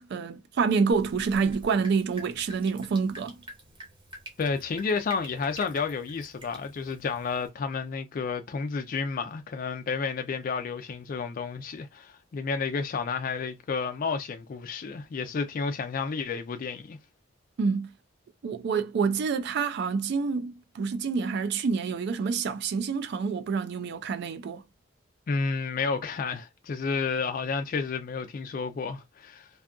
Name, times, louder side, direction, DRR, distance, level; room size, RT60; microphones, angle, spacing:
voice 1, 0.1-3.4 17.6-17.9 18.4-24.6, right 5 dB, 55° right, 0.3 m, -27 dB
Drip, 0.9-7.5, right 1 dB, 25° right, 0.9 m, -47 dB
voice 2, 4.4-17.0 25.3-29.5, left 5 dB, 45° left, 0.3 m, -31 dB
2.6 x 2.3 x 2.3 m
head